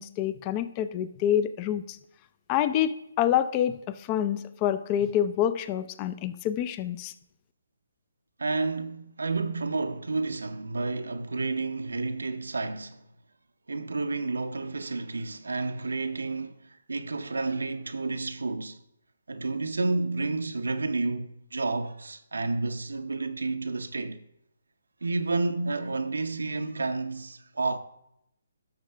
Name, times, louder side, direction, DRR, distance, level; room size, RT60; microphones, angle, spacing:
voice 1, 0.0-2.0 2.5-7.1, left 10 dB, 25° left, 0.4 m, -27 dB
voice 2, 8.4-13.0 13.7-18.8 19.3-24.2 25.0-27.8, right 3 dB, 85° right, 0.6 m, -30 dB
11.5 x 6.5 x 3.3 m
figure-of-eight pair, 145°, 0 cm